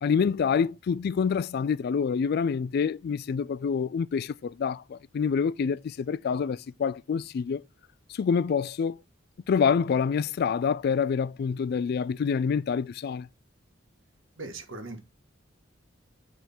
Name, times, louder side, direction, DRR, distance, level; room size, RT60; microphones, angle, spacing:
voice 1, 0.0-7.6 8.1-9.0 9.5-13.3, left 6 dB, 55° left, 0.3 m, -27 dB
voice 2, 14.4-15.0, right 2 dB, 85° right, 1.8 m, -39 dB
9.0 x 3.6 x 4.3 m
head